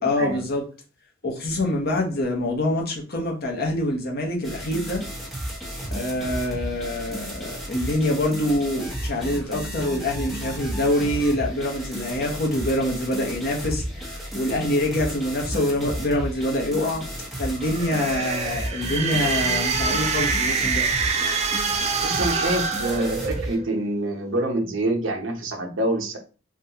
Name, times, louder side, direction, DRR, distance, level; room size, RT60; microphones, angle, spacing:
voice 1, 0.0-0.6 1.2-5.0 5.9-13.8 14.3-17.0 17.4-20.9, left 1 dB, 50° left, 0.9 m, -25 dB
sound 1, 4.4-23.6, equal, ahead, 0.9 m, -33 dB
sound 2, 17.6-23.7, right 5 dB, 35° right, 0.3 m, -26 dB
voice 2, 22.0-26.2, right 1 dB, 75° right, 0.7 m, -26 dB
3.6 x 2.3 x 2.8 m
head